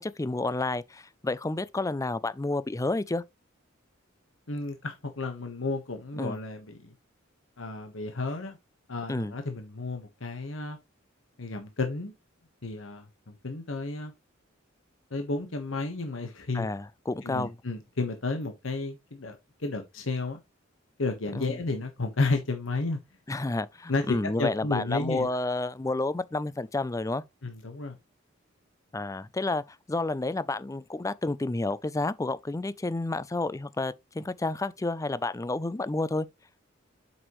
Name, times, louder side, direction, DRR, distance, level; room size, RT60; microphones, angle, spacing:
voice 1, 0.0-3.2 6.2-6.4 9.1-9.3 16.5-17.5 21.3-21.6 23.3-27.2 28.9-29.6 29.9-36.3, left 2 dB, 15° left, 0.4 m, -30 dB
voice 2, 4.5-6.9 7.6-8.6 8.9-10.8 11.4-12.1 12.6-14.1 15.1-16.7 17.2-20.4 21.0-23.0 23.9-25.3 27.4-28.0, left 3 dB, 85° left, 1.3 m, -32 dB
7.8 x 6.1 x 3.1 m
head